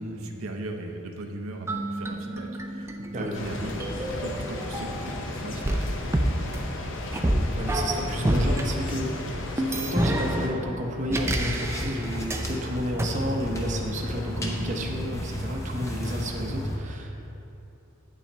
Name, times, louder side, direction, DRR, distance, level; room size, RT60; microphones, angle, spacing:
voice 1, 0.0-3.9 4.2-6.0 9.7-9.9 14.3-14.9, right 2 dB, 75° right, 3 dB, 0.6 m, -39 dB
sound 1, 1.7-5.2 5.6-8.6 9.6-12.5 13.0-13.1, right 1 dB, 10° right, 0.3 m, -29 dB
sound 2, 3.3-10.5, left 1 dB, 60° left, 0.7 m, -35 dB
voice 2, 7.6-9.2 9.5-17.3, equal, 35° right, 0 dB, 0.7 m, -31 dB
sound 3, 11.1-16.8, equal, 15° left, 0.7 m, -32 dB
9.0 x 5.9 x 4.2 m, 2.8 s
head